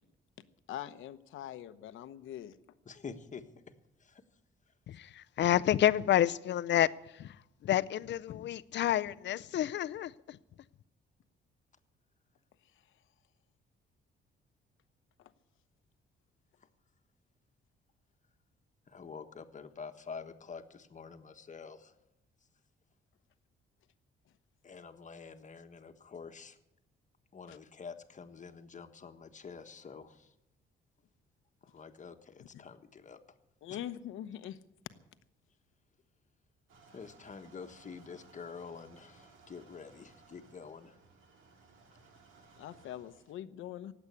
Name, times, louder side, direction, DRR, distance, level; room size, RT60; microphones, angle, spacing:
voice 1, 0.7-2.6 15.2-15.3 27.5-27.6 32.4-32.5 33.6-34.6 42.6-43.9, left 11 dB, 85° left, 0.9 m, -43 dB
voice 2, 2.8-3.4 4.0-4.2 18.9-21.9 24.6-26.6 27.3-30.3 31.6-33.2 33.7-33.8 36.9-41.0, left 5 dB, 40° left, 1.4 m, -47 dB
voice 3, 4.9-7.4 7.6-10.4, left 12 dB, 65° left, 0.6 m, -29 dB
sound 1, 36.7-43.4, right 4 dB, 85° right, 2.2 m, -60 dB
18.5 x 8.1 x 8.3 m
cardioid pair, 90°, 20 cm